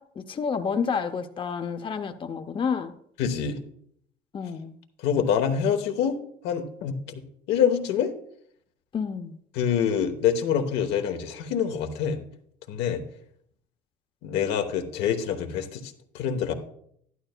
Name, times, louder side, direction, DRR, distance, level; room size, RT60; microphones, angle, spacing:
voice 1, 0.0-2.9 4.3-4.8 8.9-9.4, left 6 dB, 30° left, 0.6 m, -29 dB
voice 2, 3.2-3.6 5.0-6.1 6.4-7.0 7.5-8.1 9.5-12.2 12.7-13.0 14.2-16.5, left 8 dB, 90° left, 1.0 m, -25 dB
12.0 x 11.5 x 2.2 m
cardioid pair, 110°, 17 cm